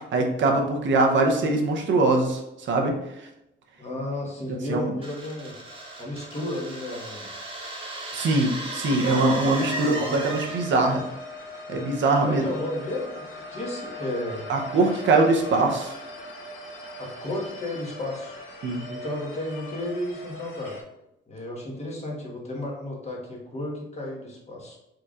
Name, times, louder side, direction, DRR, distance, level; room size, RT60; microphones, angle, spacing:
voice 1, 0.1-2.4 2.7-2.9 4.7-4.9 8.1-11.0 11.7-12.4 14.5-15.9 18.6-18.8, right 2 dB, 70° right, 2 dB, 0.8 m, -22 dB
voice 2, 3.8-5.5 6.0-7.3 9.2-10.2 12.2-14.5 17.0-18.4 18.8-20.8 21.3-24.8, left 1 dB, 35° left, -2 dB, 1.4 m, -33 dB
sound 1, 5.0-10.9, right 1 dB, 25° right, 1.2 m, -36 dB
sound 2, 9.5-20.8, left 1 dB, 80° left, 1.3 m, -40 dB
4.5 x 3.8 x 2.4 m, 0.87 s
cardioid pair, 90°, 20 cm